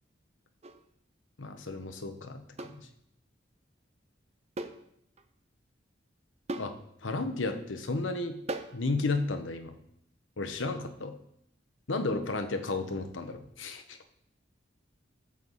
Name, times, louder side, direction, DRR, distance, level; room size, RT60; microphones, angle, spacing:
sound 1, 0.6-0.8 2.6-2.8 4.6-4.9 5.2-5.3 6.5-6.8 8.5-8.8, right 2 dB, 35° right, 0.6 m, -37 dB
voice 1, 1.4-2.9 6.6-6.7 7.0-8.4 8.7-9.7 10.4-11.1 11.9-14.0, left 3 dB, 85° left, 7 dB, 1.2 m, -33 dB
12.5 x 7.4 x 4.2 m, 0.72 s
head